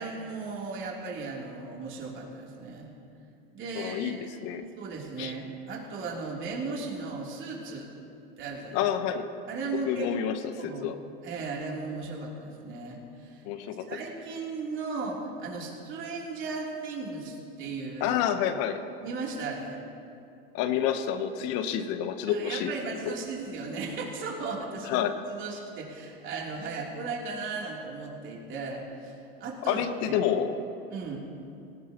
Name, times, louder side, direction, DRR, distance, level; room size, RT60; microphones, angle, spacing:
voice 1, 0.0-2.9 3.5-4.3 4.8-7.9 8.4-8.8 9.5-10.1 10.6-10.9 11.2-13.4 13.9-18.1 19.0-19.8 22.3-30.2 30.9-31.2, right 4 dB, 40° right, -3 dB, 3.3 m, -36 dB
voice 2, 3.7-4.6 5.2-5.3 8.7-9.3 9.9-10.5 10.8-10.9 13.4-13.8 18.0-18.8 20.5-22.7 23.1-23.2 24.8-25.1 29.7-30.5, left 9 dB, 55° left, 8 dB, 1.1 m, -28 dB
18.5 x 18.0 x 3.0 m, 2.5 s
hypercardioid pair, 105°, 30 cm